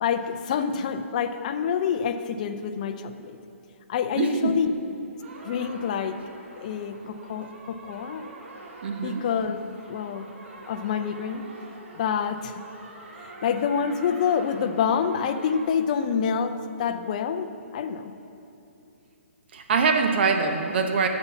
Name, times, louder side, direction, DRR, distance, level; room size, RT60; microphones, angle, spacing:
voice 1, 0.0-3.3 3.9-4.7 5.4-6.2 6.6-8.3 9.0-9.6 9.9-10.3 10.7-11.4 12.0-12.5 13.4-18.1, left 7 dB, 35° left, 9 dB, 0.5 m, -27 dB
voice 2, 4.2-4.6 8.8-9.2 19.5-21.1, right 5 dB, 50° right, 5 dB, 0.8 m, -23 dB
sound 1, 5.2-15.6, right 2 dB, 65° right, 1.9 m, -45 dB
9.1 x 7.0 x 7.1 m, 2.8 s
hypercardioid pair, 165°, 7 cm